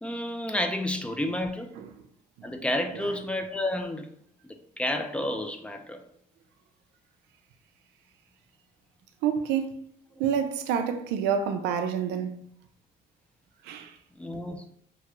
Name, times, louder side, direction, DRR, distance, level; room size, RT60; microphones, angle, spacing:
voice 1, 0.0-1.7 2.4-4.1 4.8-6.0 14.2-14.6, left 1 dB, 5° left, 0.3 m, -30 dB
voice 2, 9.2-9.8 10.2-12.3 13.7-13.9, right 7 dB, 85° right, 0.4 m, -28 dB
2.8 x 2.3 x 3.0 m
cardioid pair, 110°, 17 cm